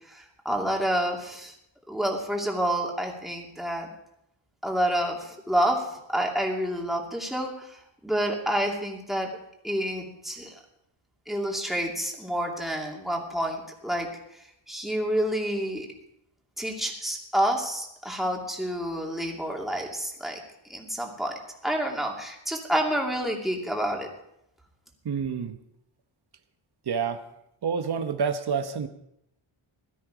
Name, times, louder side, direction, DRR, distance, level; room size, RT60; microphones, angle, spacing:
voice 1, 0.1-1.5 1.9-3.9 4.6-9.3 9.6-10.6 11.3-14.1 14.7-15.9 16.6-20.4 20.7-21.3 21.6-24.1, equal, ahead, 0 dB, 2.6 m, -28 dB
voice 2, 25.0-25.6 26.9-27.2 27.6-28.9, right 6 dB, 50° right, 8 dB, 1.1 m, -28 dB
17.0 x 13.0 x 5.0 m, 0.79 s
wide cardioid pair, 130°, 49 cm